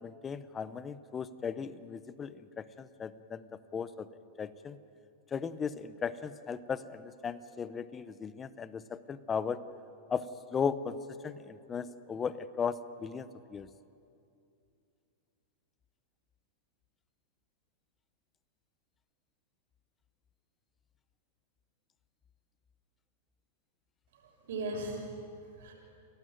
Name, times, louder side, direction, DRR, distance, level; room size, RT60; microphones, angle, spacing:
voice 1, 0.0-3.4 3.7-4.1 4.4-4.8 5.3-9.6 10.1-10.2 10.5-11.0 11.2-13.7, left 6 dB, 20° left, 15 dB, 0.7 m, -36 dB
voice 2, 24.1-25.7, right 2 dB, 70° right, 0 dB, 6.3 m, -39 dB
29.5 x 12.5 x 9.2 m, 2.6 s
hypercardioid pair, 130°, 0 cm